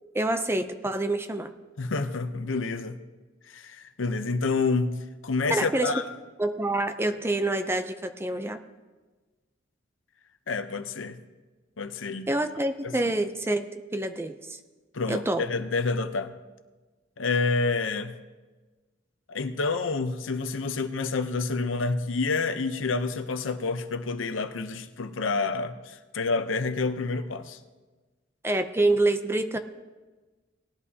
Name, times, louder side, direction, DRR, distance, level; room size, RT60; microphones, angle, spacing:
voice 1, 0.1-1.5 5.5-6.0 6.4-8.6 12.3-14.6 15.1-15.4 28.4-29.6, right 2 dB, 15° right, 0.5 m, -27 dB
voice 2, 1.8-3.0 3.5-6.0 10.5-11.2 11.8-12.3 12.8-12.9 14.9-16.3 17.2-18.1 19.3-27.6, left 4 dB, 90° left, 0.7 m, -28 dB
18.5 x 11.0 x 2.8 m
head